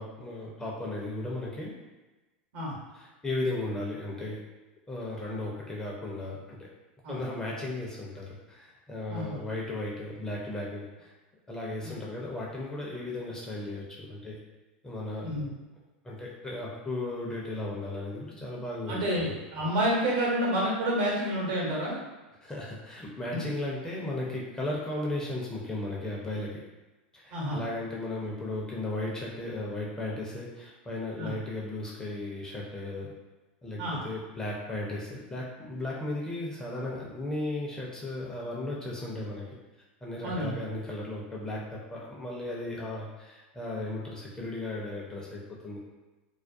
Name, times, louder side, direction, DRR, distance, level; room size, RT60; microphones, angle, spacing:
voice 1, 0.0-1.8 2.9-4.4 4.9-6.7 7.1-11.1 11.5-14.4 14.8-15.3 16.0-19.0 22.4-26.6 27.1-33.1 33.6-39.5 40.0-45.8, left 2 dB, 10° left, -4 dB, 0.5 m, -35 dB
voice 2, 18.9-21.9 27.3-27.6 31.2-31.3 33.8-34.0 40.2-40.5, equal, 65° right, -4 dB, 1.0 m, -29 dB
2.3 x 2.1 x 2.5 m, 1.2 s
supercardioid pair, 115°, 6 cm